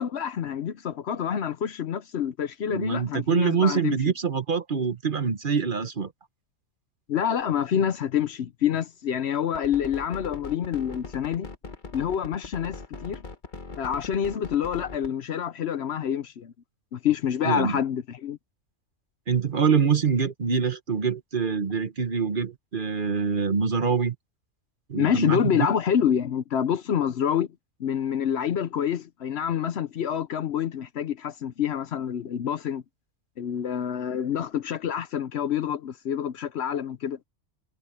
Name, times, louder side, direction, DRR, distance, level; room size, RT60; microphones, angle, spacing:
voice 1, 0.0-4.0 7.1-11.5 11.9-13.2 13.8-16.5 16.9-18.4 24.9-27.5 27.8-32.8 33.4-37.2, left 8 dB, 60° left, 0.9 m, -27 dB
voice 2, 2.7-6.1 17.4-17.8 19.3-24.1 24.9-25.7, right 6 dB, 45° right, 1.2 m, -25 dB
sound 1, 9.5-15.1, left 3 dB, 40° left, 1.6 m, -40 dB
omnidirectional pair, 1.3 m